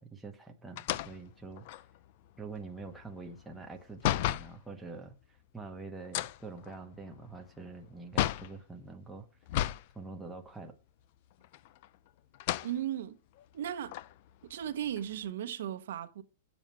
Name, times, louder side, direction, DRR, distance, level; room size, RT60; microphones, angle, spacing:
voice 1, 0.0-1.6 2.4-9.3 9.9-10.7, right 3 dB, 5° right, 1.0 m, -45 dB
sound 1, 0.8-4.6 6.0-8.6 9.5-9.9 10.3-10.4 11.4-12.0 12.3-12.7 13.4-13.5 13.9-15.3, left 14 dB, 45° left, 0.4 m, -34 dB
voice 2, 12.6-13.2 13.5-13.9 14.4-16.2, right 10 dB, 70° right, 1.1 m, -36 dB
8.9 x 7.3 x 4.5 m
supercardioid pair, 165°, 0 cm